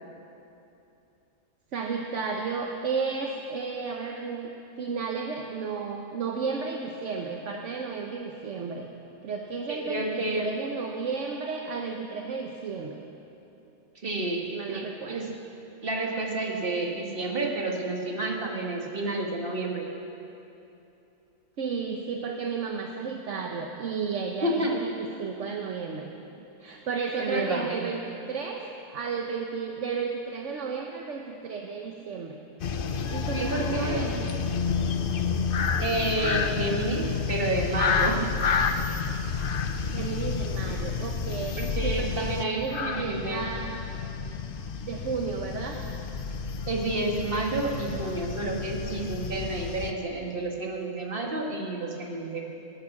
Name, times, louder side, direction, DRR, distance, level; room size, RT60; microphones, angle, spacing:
voice 1, 1.7-4.5 4.8-8.9 9.2-13.0 14.5-15.3 21.6-26.1 26.6-28.6 28.9-32.4 33.1-34.2 34.8-34.9 39.9-43.7 44.8-45.8, right 5 dB, 65° right, 2 dB, 1.2 m, -33 dB
voice 2, 9.7-10.5 14.0-15.3 15.8-19.9 24.4-24.8 27.2-27.8 33.3-34.1 35.8-38.2 41.6-43.4 46.7-52.5, right 2 dB, 45° right, 0 dB, 2.1 m, -30 dB
sound 1, 32.6-49.9, left 5 dB, 50° left, 0.8 m, -30 dB
18.0 x 11.0 x 7.2 m, 2.8 s
omnidirectional pair, 1.4 m